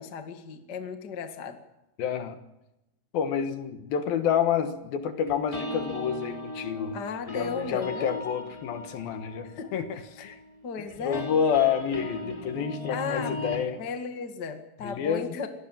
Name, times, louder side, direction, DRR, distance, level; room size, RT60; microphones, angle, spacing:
voice 1, 0.0-1.6 6.9-8.2 9.4-10.3 10.6-11.3 12.9-13.4 13.8-15.5, left 5 dB, 40° left, 6 dB, 1.7 m, -35 dB
voice 2, 2.0-2.4 3.1-7.0 7.3-10.4 11.0-13.8 14.8-15.4, left 7 dB, 70° left, 8 dB, 3.0 m, -28 dB
sound 1, 5.3-13.6, left 2 dB, 10° left, 3.2 m, -38 dB
23.5 x 18.0 x 7.4 m, 0.91 s
omnidirectional pair, 4.7 m